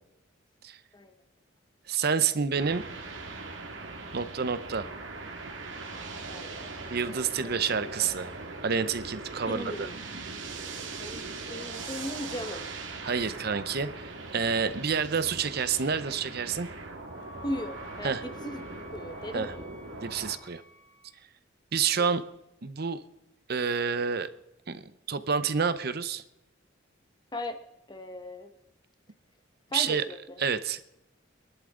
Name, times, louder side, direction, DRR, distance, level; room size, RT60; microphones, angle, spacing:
voice 1, 1.9-2.8 4.1-4.9 6.9-8.3 8.6-9.9 13.0-16.7 18.0-18.2 19.3-19.5 20.0-20.6 21.7-22.2 22.6-23.0 23.5-24.3 24.7-24.8 25.1-26.2 29.7-30.0 30.4-30.9, right 6 dB, 55° right, 12 dB, 0.7 m, -28 dB
sound 1, 2.6-20.4, right 3 dB, 70° right, 2.2 m, -40 dB
voice 2, 6.3-6.8 7.1-8.1 9.5-9.9 11.0-12.6 17.4-18.6 18.9-19.7 22.0-22.1 27.3-27.6 27.9-28.5 29.7-30.4, left 1 dB, 20° left, 7 dB, 1.3 m, -38 dB
Wind instrument woodwind instrument, 16.4-21.2, equal, 35° right, 1.7 m, -52 dB
23.5 x 11.5 x 3.8 m, 0.89 s
head